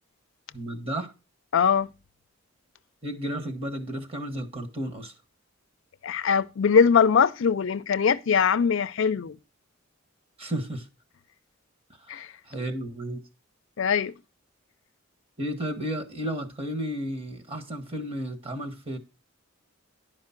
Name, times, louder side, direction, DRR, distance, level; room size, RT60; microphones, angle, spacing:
voice 1, 0.5-1.1 3.0-5.1 10.4-10.8 12.1-13.2 15.4-19.0, right 1 dB, 30° right, 1.5 m, -33 dB
voice 2, 1.5-1.9 6.0-9.4 12.1-12.3 13.8-14.1, left 6 dB, 65° left, 0.5 m, -22 dB
10.5 x 5.1 x 5.8 m
head